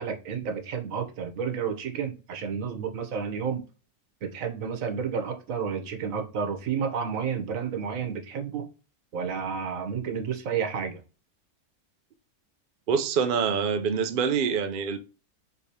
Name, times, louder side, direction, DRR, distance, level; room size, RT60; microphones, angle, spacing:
voice 1, 0.0-3.6 4.2-8.7 9.1-11.0, right 6 dB, 65° right, 1.2 m, -31 dB
voice 2, 12.9-15.0, right 6 dB, 90° right, 0.4 m, -25 dB
4.7 x 3.2 x 2.8 m
omnidirectional pair, 1.6 m